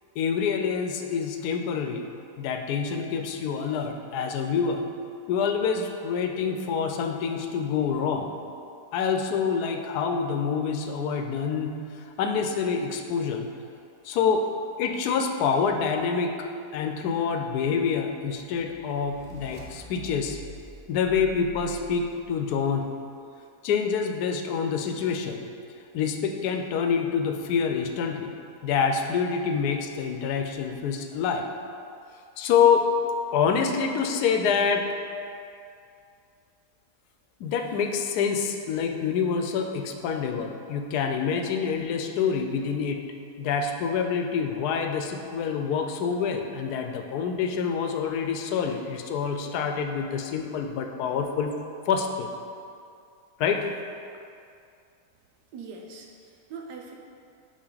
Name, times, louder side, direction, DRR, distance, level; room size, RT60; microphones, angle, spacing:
voice 1, 0.2-2.1 2.4-4.8 5.3-8.3 8.9-11.8 12.2-13.5 14.0-14.5 14.8-16.5 16.7-20.4 20.9-22.9 23.6-25.5 25.9-28.3 28.6-31.5 32.4-32.9 33.3-34.8 37.4-43.0 43.4-51.5 51.9-52.3 53.4-53.7, left 6 dB, 75° left, 5 dB, 1.1 m, -26 dB
sound 1, 18.3-22.5, left 2 dB, 40° right, 0.3 m, -46 dB
voice 2, 55.5-56.9, right 4 dB, 90° right, 1 dB, 1.4 m, -42 dB
7.3 x 4.8 x 3.9 m, 2.4 s
omnidirectional pair, 1.7 m